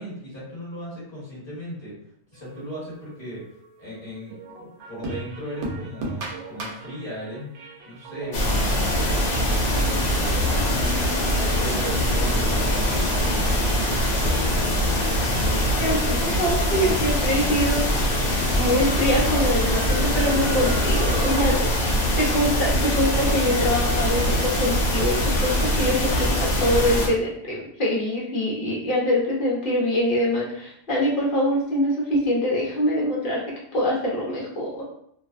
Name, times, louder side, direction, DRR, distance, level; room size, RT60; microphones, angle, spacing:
voice 1, 0.0-2.0 2.3-7.6 7.8-10.1 10.5-11.0 11.6-13.3 13.7-16.8, equal, 20° left, -8 dB, 1.2 m, -37 dB
sound 1, 2.3-3.7 4.2-21.5, right 2 dB, 75° right, 0.9 m, -35 dB
sound 2, 8.3-27.1, left 1 dB, 80° left, 1.0 m, -23 dB
voice 2, 15.8-17.8 18.6-21.7 22.2-33.4 33.7-34.8, equal, 50° left, -4 dB, 0.9 m, -24 dB
2.5 x 2.2 x 2.4 m, 0.71 s
omnidirectional pair, 1.2 m